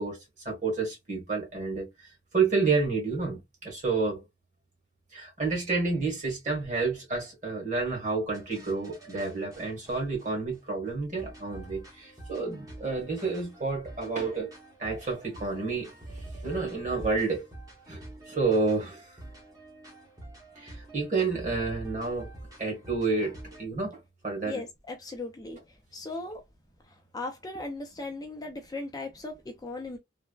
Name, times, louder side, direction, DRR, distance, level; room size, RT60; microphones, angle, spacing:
voice 1, 0.0-4.2 5.1-14.5 14.8-15.9 16.2-17.4 17.9-18.0 18.3-19.2 20.6-22.3 22.6-24.6, right 4 dB, 40° right, 1.3 m, -30 dB
sound 1, 8.3-10.6 11.2-23.7, right 1 dB, 20° right, 0.7 m, -46 dB
voice 2, 24.5-26.4 26.8-30.0, left 2 dB, 20° left, 0.4 m, -38 dB
3.3 x 2.0 x 2.2 m
head